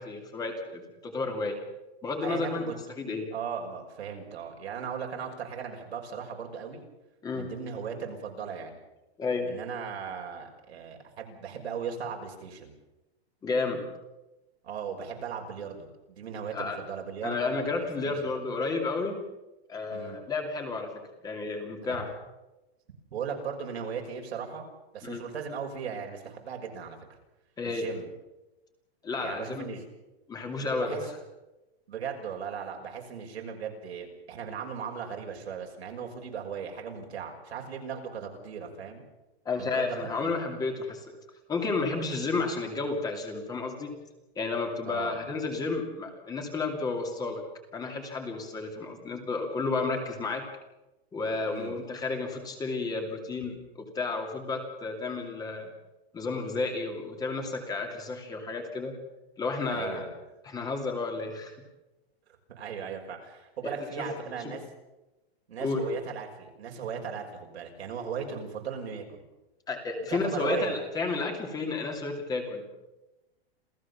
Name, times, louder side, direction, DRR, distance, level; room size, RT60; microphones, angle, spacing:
voice 1, 0.0-1.6 2.0-2.6 3.0-3.3 7.2-7.5 9.2-9.5 13.4-13.8 16.5-16.8 17.2-19.2 19.7-22.1 25.0-25.2 27.6-27.9 29.0-29.7 30.3-31.1 39.4-41.0 41.5-43.9 44.4-47.4 47.7-50.4 51.1-55.7 56.1-58.9 59.4-60.1 60.4-61.5 63.6-64.1 65.6-65.8 69.7-72.6, left 3 dB, 10° left, 3 dB, 2.7 m, -32 dB
voice 2, 2.2-2.7 3.3-6.8 7.3-8.8 9.5-12.7 14.6-17.5 17.8-18.3 19.9-20.2 21.8-22.0 23.1-24.7 24.9-27.0 27.6-28.1 29.2-29.9 30.6-31.1 31.9-39.0 39.6-40.3 44.8-45.2 51.5-51.8 59.7-60.1 62.6-64.6 65.5-69.2 70.0-70.8, right 6 dB, 85° right, 2 dB, 6.1 m, -37 dB
28.0 x 16.0 x 7.2 m, 1.0 s
supercardioid pair, 165°, 32 cm